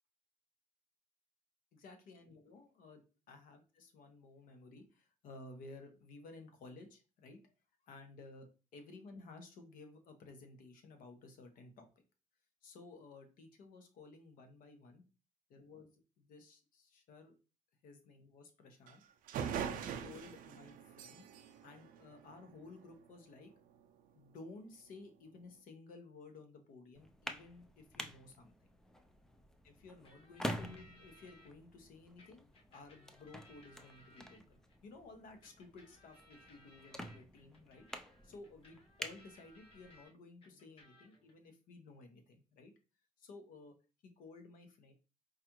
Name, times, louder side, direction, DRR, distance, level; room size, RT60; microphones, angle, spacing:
voice 1, 1.7-7.4 7.8-11.9 12.6-15.0 15.5-15.9 16.2-17.4 17.8-19.0 19.5-21.3 21.6-23.5 24.1-28.5 29.6-37.9 38.2-42.7 43.2-43.7 44.0-44.9, left 3 dB, 70° left, 6 dB, 0.9 m, -55 dB
sound 1, 18.9-19.0 19.3-22.7, right 8 dB, 70° right, 0.4 m, -42 dB
sound 2, 27.0-40.0, equal, 5° left, 0.3 m, -48 dB
sound 3, 30.0-31.5 32.2-34.8 35.4-40.1 40.4-41.3, left 1 dB, 40° left, 1.0 m, -64 dB
4.8 x 2.4 x 2.9 m, 0.32 s
cardioid pair, 145°, 15 cm